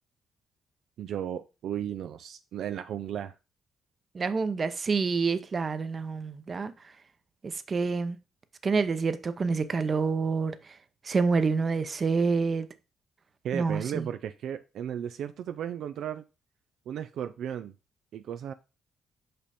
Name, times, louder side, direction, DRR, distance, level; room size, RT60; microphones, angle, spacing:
voice 1, 1.0-3.4 13.4-16.2 16.9-17.7 18.1-18.5, right 9 dB, 75° right, 0.4 m, -35 dB
voice 2, 4.1-6.7 7.4-8.2 8.6-10.6 11.0-12.7 13.5-14.1, right 4 dB, 40° right, 0.8 m, -27 dB
5.3 x 5.2 x 4.3 m
cardioid pair, 70°, 0 cm